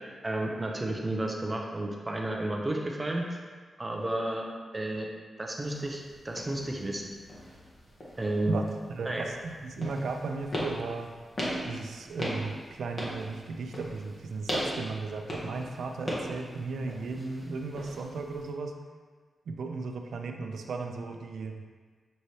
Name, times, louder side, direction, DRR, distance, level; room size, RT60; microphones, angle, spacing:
voice 1, 0.2-3.4 3.8-4.5 4.7-5.1 5.4-7.0 8.2-8.6 9.0-9.3, right 1 dB, 20° right, 0 dB, 0.4 m, -32 dB
sound 1, 5.6-18.5, equal, 35° left, 0.9 m, -39 dB
voice 2, 8.9-11.1 11.6-18.7 19.5-21.6, right 4 dB, 90° right, 4 dB, 0.4 m, -35 dB
6.2 x 3.2 x 2.7 m, 1.5 s
wide cardioid pair, 155°, 0 cm